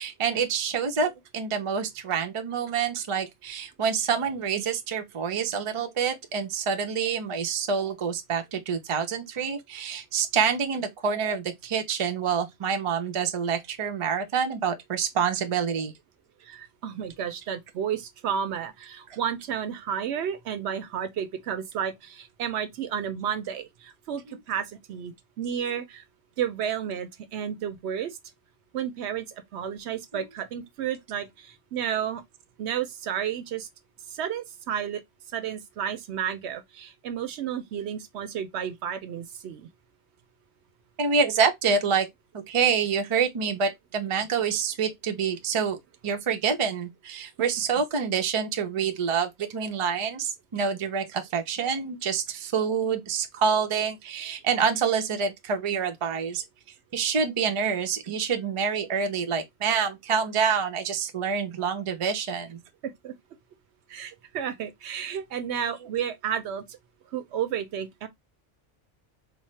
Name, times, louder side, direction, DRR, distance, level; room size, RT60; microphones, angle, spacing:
voice 1, 0.0-15.9 19.1-19.2 30.1-30.2 41.0-42.1 42.3-45.8 46.0-56.4 56.9-62.6, right 6 dB, 40° right, 0.4 m, -27 dB
voice 2, 16.4-26.0 26.4-28.2 28.7-29.3 29.5-32.2 32.6-33.7 34.1-35.0 35.3-39.7 63.0-63.1 63.9-66.6 67.1-68.1, right 8 dB, 70° right, 0.8 m, -32 dB
4.1 x 2.0 x 3.1 m
omnidirectional pair, 1.2 m